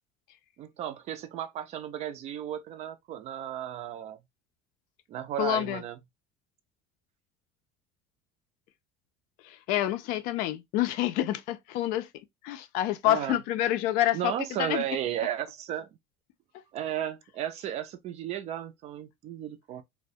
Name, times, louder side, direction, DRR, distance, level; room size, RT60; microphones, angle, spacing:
voice 1, 0.6-4.2 5.1-6.0 13.0-13.4 14.1-15.9 16.7-19.8, right 11 dB, 45° right, 0.4 m, -34 dB
voice 2, 5.4-5.8 9.5-12.1 12.4-14.9, left 13 dB, 65° left, 0.4 m, -28 dB
2.3 x 2.1 x 2.6 m
cardioid pair, 130°, 15 cm